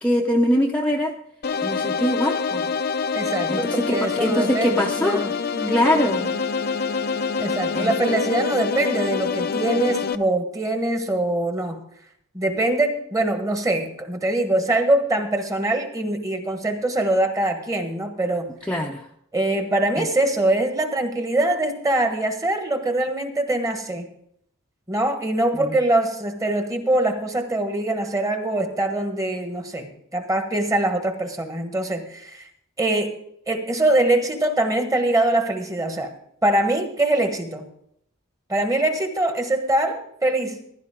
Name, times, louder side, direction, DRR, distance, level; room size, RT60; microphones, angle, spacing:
voice 1, 0.0-1.1 1.6-2.7 3.5-5.2 5.7-6.3 7.8-8.2 18.7-19.1 20.0-20.1 25.5-25.8, equal, 5° left, -1 dB, 0.7 m, -23 dB
sound 1, 1.4-10.1, left 5 dB, 45° left, 0.6 m, -26 dB
voice 2, 3.1-5.9 7.4-11.8 12.3-18.5 19.3-24.0 24.9-32.5 32.8-33.1 33.5-36.1 36.4-37.7 38.5-40.6, right 1 dB, 15° right, 6 dB, 1.3 m, -23 dB
15.5 x 11.5 x 3.7 m, 0.70 s
head